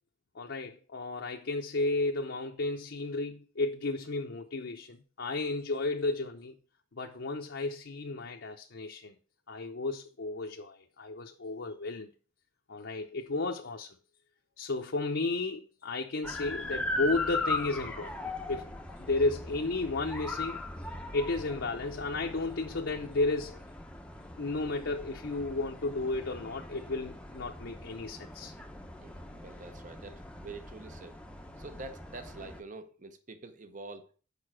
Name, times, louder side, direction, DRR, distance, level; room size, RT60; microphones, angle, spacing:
voice 1, 0.3-6.6 6.9-9.1 9.5-12.1 12.7-14.0 14.6-18.7 19.0-20.6 21.1-23.6 24.4-28.5, left 2 dB, 60° left, 0.7 m, -33 dB
sound 1, 16.2-32.6, left 2 dB, 5° left, 0.7 m, -39 dB
voice 2, 29.0-31.2 31.6-34.1, right 3 dB, 40° right, 0.8 m, -46 dB
6.7 x 5.2 x 6.1 m
head